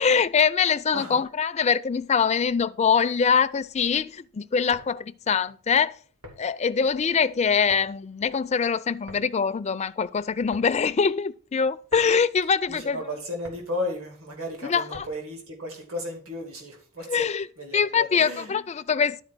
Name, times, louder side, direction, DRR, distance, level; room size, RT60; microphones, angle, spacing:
voice 1, 0.0-6.0 6.4-13.1 14.6-15.1 17.1-17.5 17.7-19.2, left 6 dB, 30° left, 0.4 m, -23 dB
sound 1, 4.5-15.4, left 1 dB, 85° right, 2.9 m, -50 dB
voice 2, 12.7-17.3 17.6-18.5, left 1 dB, 70° right, 2.4 m, -34 dB
12.0 x 4.6 x 6.1 m
head